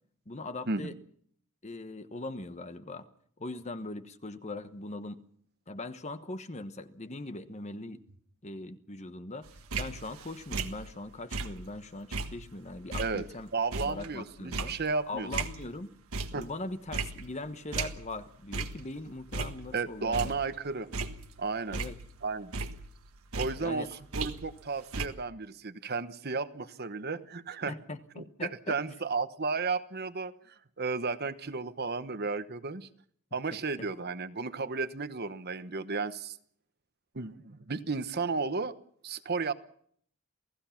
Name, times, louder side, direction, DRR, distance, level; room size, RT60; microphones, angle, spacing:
voice 1, 0.3-0.9 1.6-3.1 3.4-5.2 5.7-8.0 8.4-13.5 13.8-14.8 15.1-15.9 16.3-20.3 21.7-22.0 23.6-23.9 27.7-28.8, left 2 dB, 30° left, 10 dB, 1.2 m, -40 dB
sound 1, 9.5-11.8 12.1-15.8 16.1-16.6 16.9-18.3 18.5-18.9 19.2-20.6 20.9-22.3 22.5-24.7 24.9-25.1, right 3 dB, 75° right, 1.5 m, -37 dB
voice 2, 13.5-15.3 16.3-16.5 19.7-20.9 21.4-21.8 22.2-22.5 23.3-23.9 24.1-27.8 28.2-32.9 33.3-36.4 37.1-38.7 39.0-39.5, right 4 dB, 45° right, 11 dB, 1.0 m, -33 dB
28.5 x 17.0 x 5.9 m, 0.63 s
head